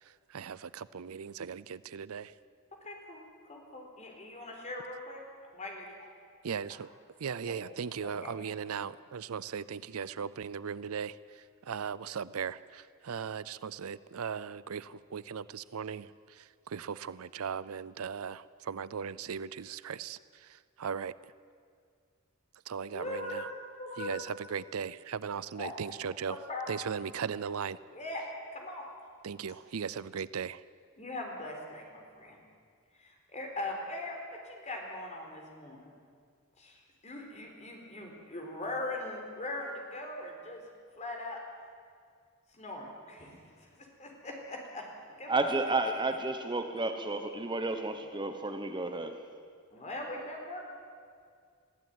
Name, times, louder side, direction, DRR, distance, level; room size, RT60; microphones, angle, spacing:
voice 1, 0.0-2.4 6.4-6.9 7.2-21.1 22.7-23.4 24.0-26.4 26.7-27.8 29.2-30.6, right 6 dB, 80° right, 18 dB, 0.5 m, -38 dB
voice 2, 2.8-5.2 5.5-5.9 7.4-8.3 22.9-23.4 23.8-24.2 25.5-25.7 26.3-26.8 27.9-28.2 28.5-28.9 31.0-32.4 32.9-35.9 36.6-40.6 41.0-41.4 42.5-45.6 49.7-50.6, left 2 dB, 35° left, 1 dB, 4.0 m, -41 dB
voice 3, 45.3-49.2, right 2 dB, 20° right, 6 dB, 1.1 m, -31 dB
21.5 x 14.5 x 9.3 m, 2.1 s
head